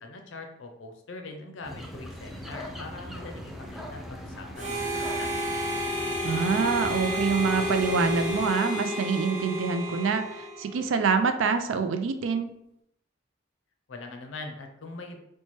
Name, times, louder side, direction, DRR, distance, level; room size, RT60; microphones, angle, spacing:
voice 1, 0.0-5.3 13.9-15.2, left 3 dB, 70° left, 4 dB, 0.6 m, -42 dB
sound 1, 1.6-8.5, equal, ahead, 0.3 m, -40 dB
Harmonica, 4.6-10.9, left 1 dB, 40° right, 0.9 m, -31 dB
voice 2, 6.2-12.5, right 5 dB, 75° right, 8 dB, 0.4 m, -26 dB
4.2 x 2.1 x 3.0 m, 0.79 s
head